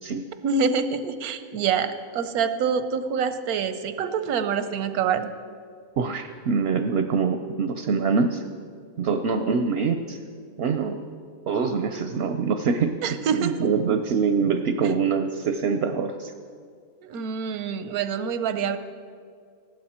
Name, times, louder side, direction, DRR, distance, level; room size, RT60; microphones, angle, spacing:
voice 1, 0.4-5.3 13.0-13.6 14.8-14.9 17.0-18.8, right 6 dB, 85° right, 11 dB, 1.2 m, -26 dB
voice 2, 6.0-8.4 9.0-10.2 10.6-11.0 11.5-13.0 13.3-16.3, right 5 dB, 60° right, 8 dB, 0.7 m, -24 dB
15.0 x 12.0 x 4.3 m, 2.1 s
omnidirectional pair, 1.5 m